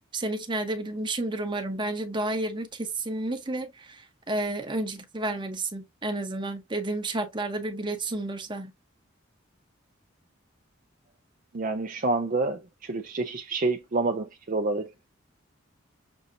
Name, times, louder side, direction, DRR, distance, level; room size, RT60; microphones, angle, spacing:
voice 1, 0.1-8.7, right 2 dB, 25° right, 0.9 m, -31 dB
voice 2, 11.5-15.1, right 3 dB, 40° right, 0.5 m, -28 dB
6.2 x 2.7 x 2.6 m
head